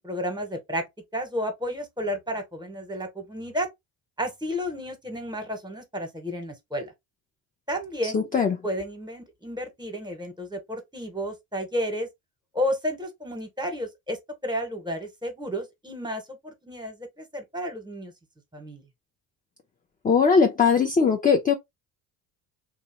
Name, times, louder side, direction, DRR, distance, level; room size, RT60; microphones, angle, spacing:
voice 1, 0.0-0.8 1.1-3.7 4.2-6.9 7.7-8.3 8.6-12.1 12.5-18.1 18.5-18.8, equal, 10° right, 1.0 m, -32 dB
voice 2, 8.1-8.6 20.0-21.5, left 5 dB, 20° left, 0.5 m, -20 dB
2.6 x 2.1 x 2.8 m
supercardioid pair, 70°, 46 cm